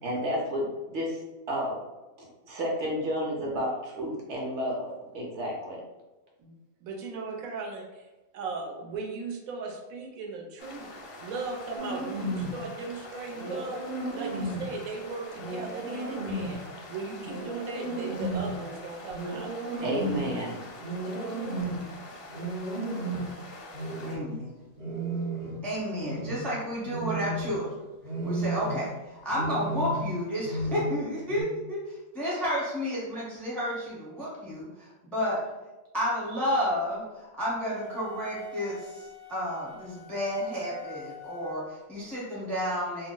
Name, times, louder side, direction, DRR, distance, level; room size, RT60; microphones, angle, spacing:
voice 1, 0.0-1.2 1.5-1.8 2.2-5.8 19.8-20.7, equal, 60° right, -2 dB, 0.9 m, -31 dB
voice 2, 6.8-8.1 8.3-10.9 11.2-16.6 16.9-20.1, right 4 dB, 80° right, 0 dB, 1.1 m, -37 dB
sound 1, 10.6-24.2, left 2 dB, 60° left, 0.6 m, -45 dB
sound 2, 11.8-12.6 13.4-14.7 15.4-16.7 17.2-18.6 19.1-20.4 20.8-21.9 22.3-23.4 23.7-24.3 24.8-25.7 26.0-26.5 26.9-27.6 28.0-28.9 29.3-30.1 30.4-31.0 31.3-31.4, right 1 dB, 45° right, 0.6 m, -33 dB
voice 3, 24.0-24.5 25.6-27.7 28.2-34.6 35.1-35.4 35.9-43.1, equal, ahead, -6 dB, 0.5 m, -31 dB
sound 3, 37.5-41.8, left 8 dB, 80° left, 1.0 m, -47 dB
2.6 x 2.0 x 3.7 m, 1.1 s
omnidirectional pair, 1.5 m